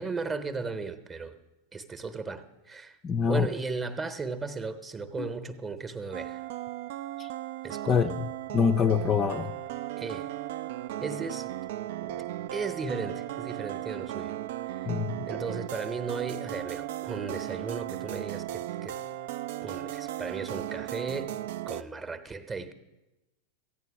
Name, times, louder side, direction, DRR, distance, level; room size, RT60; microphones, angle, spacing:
voice 1, 0.0-1.4 1.7-3.0 3.3-6.5 7.6-8.2 10.0-10.3 11.0-11.5 12.0-14.4 14.7-14.9 15.3-19.0 19.6-21.3 21.7-22.7, right 4 dB, 20° right, 11 dB, 0.9 m, -36 dB
voice 2, 3.0-3.5 5.2-5.3 7.2-7.3 7.9-9.5 14.9-15.3, left 6 dB, 25° left, 7 dB, 0.5 m, -25 dB
sound 1, 6.1-21.8, right 13 dB, 55° right, 0.4 m, -36 dB
14.5 x 9.5 x 6.0 m, 1.0 s
figure-of-eight pair, 90°, 0 cm